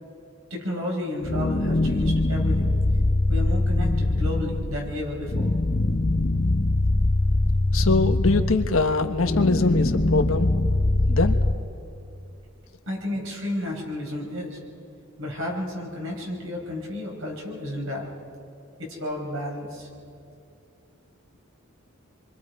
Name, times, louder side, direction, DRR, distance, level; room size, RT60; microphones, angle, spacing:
voice 1, 0.5-2.7 3.3-5.5 12.9-14.6 15.2-18.1 18.8-19.9, left 1 dB, 70° right, -1 dB, 5.3 m, -32 dB
sound 1, 1.2-11.5, left 2 dB, 35° left, 0.7 m, -23 dB
voice 2, 7.7-10.5 11.1-11.4, left 3 dB, 75° left, 6 dB, 1.2 m, -23 dB
27.0 x 24.0 x 4.8 m, 2.6 s
head